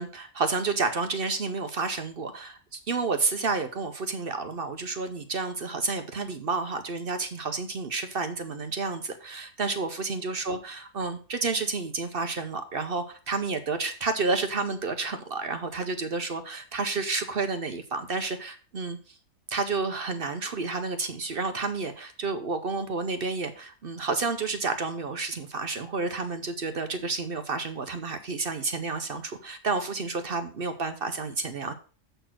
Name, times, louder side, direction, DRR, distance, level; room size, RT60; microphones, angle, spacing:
voice 1, 0.0-19.2 19.5-31.7, right 4 dB, 50° right, 8 dB, 0.7 m, -30 dB
7.7 x 4.5 x 5.9 m, 0.38 s
omnidirectional pair, 1.6 m